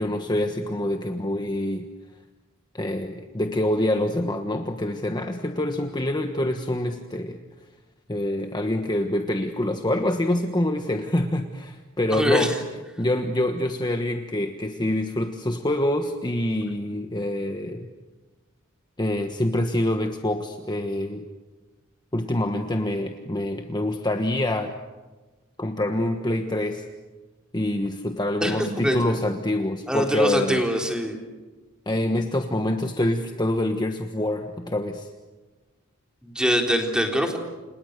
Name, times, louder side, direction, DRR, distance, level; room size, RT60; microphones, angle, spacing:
voice 1, 0.0-1.8 2.7-7.4 8.1-12.5 13.0-17.9 19.0-21.2 22.1-24.7 25.6-26.8 27.5-30.6 31.9-35.1, left 1 dB, 20° left, 5 dB, 1.3 m, -26 dB
voice 2, 12.1-12.5 28.4-29.1 29.9-31.2 36.2-37.4, equal, 5° right, 2 dB, 3.9 m, -23 dB
30.0 x 27.5 x 6.8 m, 1.2 s
head